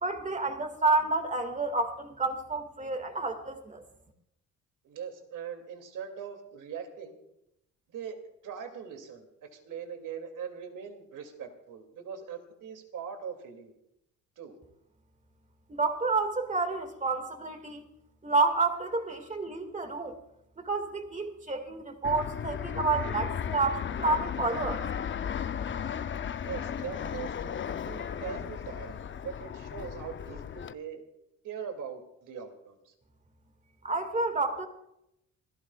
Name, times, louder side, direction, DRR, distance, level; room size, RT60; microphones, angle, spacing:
voice 1, 0.0-3.8 15.7-17.9 18.2-20.2 20.6-24.8 33.8-34.7, right 3 dB, 25° right, 6 dB, 2.1 m, -29 dB
voice 2, 4.8-7.2 7.9-8.2 8.4-13.7 14.4-14.6 26.4-31.0 31.4-32.9, right 7 dB, 75° right, 5 dB, 2.7 m, -41 dB
Fixed-wing aircraft airplane, 22.0-30.7, left 8 dB, 40° left, 0.7 m, -35 dB
27.5 x 14.0 x 2.4 m, 0.81 s
cardioid pair, 95°, 32 cm